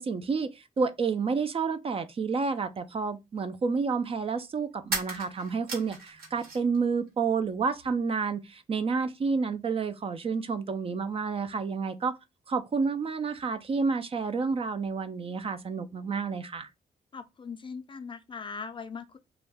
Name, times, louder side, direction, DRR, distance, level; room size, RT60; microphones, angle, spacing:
voice 1, 0.0-12.2 12.5-16.7, right 5 dB, 35° right, 0.4 m, -30 dB
sound 1, 4.8-6.8 7.1-7.9, right 3 dB, 75° right, 1.3 m, -37 dB
voice 2, 17.1-19.2, left 5 dB, 30° left, 0.4 m, -40 dB
2.3 x 2.1 x 3.3 m
cardioid pair, 75°, 16 cm